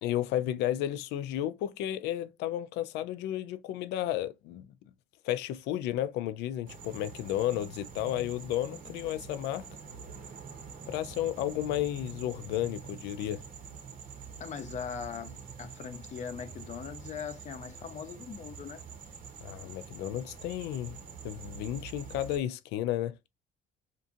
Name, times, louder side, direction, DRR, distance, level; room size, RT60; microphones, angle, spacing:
voice 1, 0.0-4.6 5.2-9.6 10.9-13.4 19.4-21.0 21.2-23.2, left 12 dB, 85° left, 0.4 m, -32 dB
sound 1, 6.7-22.4, right 5 dB, 55° right, 0.9 m, -46 dB
voice 2, 14.4-18.8, left 7 dB, 45° left, 0.6 m, -40 dB
2.6 x 2.5 x 2.5 m
cardioid pair, 110°, 17 cm